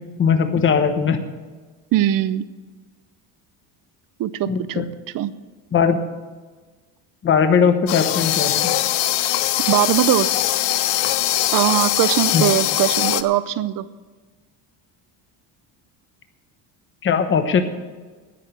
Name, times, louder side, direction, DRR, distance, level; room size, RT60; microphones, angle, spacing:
voice 1, 0.2-1.2 4.5-4.8 5.7-6.0 7.2-8.7 12.3-12.5 17.0-17.6, left 6 dB, 25° left, 8 dB, 1.0 m, -19 dB
voice 2, 1.9-2.5 4.2-4.9 5.1-5.3 9.7-10.5 11.5-13.9, right 13 dB, 45° right, 15 dB, 0.7 m, -20 dB
sound 1, 7.9-13.2, left 14 dB, 70° left, 0.8 m, -21 dB
10.0 x 9.6 x 8.0 m, 1.3 s
cardioid pair, 130°, 45 cm